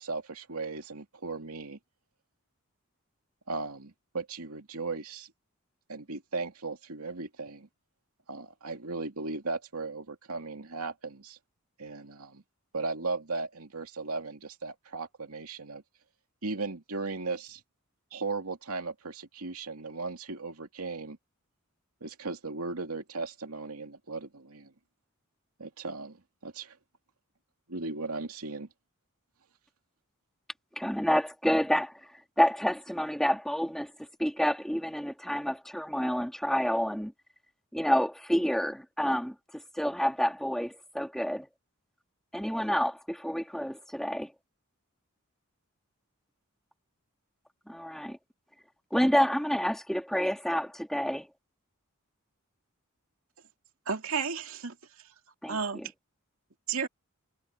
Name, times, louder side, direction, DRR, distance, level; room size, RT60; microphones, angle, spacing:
voice 1, 0.0-1.8 3.5-5.3 5.9-7.7 8.3-11.4 11.8-12.4 12.7-15.8 16.4-17.6 18.1-21.2 22.0-24.7 25.6-26.2 26.4-26.8 27.7-28.7, right 3 dB, 85° right, 2.5 m, -37 dB
voice 2, 30.8-31.9 32.4-33.9 34.2-37.1 37.7-39.3 39.7-41.5 42.3-44.3 47.7-48.2 48.9-51.3 55.4-55.8, equal, ahead, 2.9 m, -28 dB
voice 3, 53.9-55.1 55.5-55.9 56.7-56.9, right 5 dB, 70° right, 2.5 m, -32 dB
head